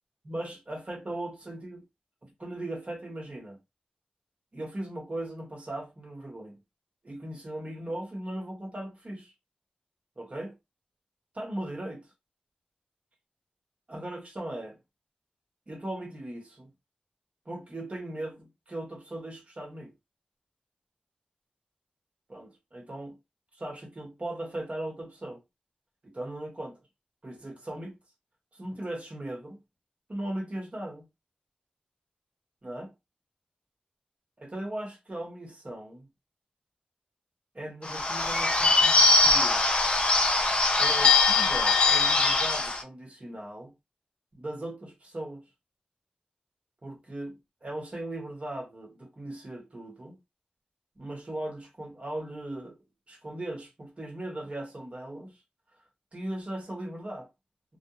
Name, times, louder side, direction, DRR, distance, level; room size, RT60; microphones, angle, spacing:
voice 1, 0.2-1.8 2.2-3.6 4.5-6.6 7.0-9.3 10.2-10.5 11.3-12.1 13.9-14.8 15.7-16.7 17.5-19.9 22.3-23.2 23.5-25.4 26.0-26.8 27.2-27.9 28.5-29.6 30.1-31.0 32.6-32.9 34.4-36.1 37.5-39.6 40.8-43.7 44.3-45.5 46.8-50.2 51.0-52.8 53.1-55.4 56.1-57.3, right 1 dB, 45° right, 1.0 m, -38 dB
Bird / Bell, 37.8-42.8, left 3 dB, 40° left, 0.6 m, -22 dB
2.2 x 2.2 x 2.9 m
wide cardioid pair, 80°, 3 cm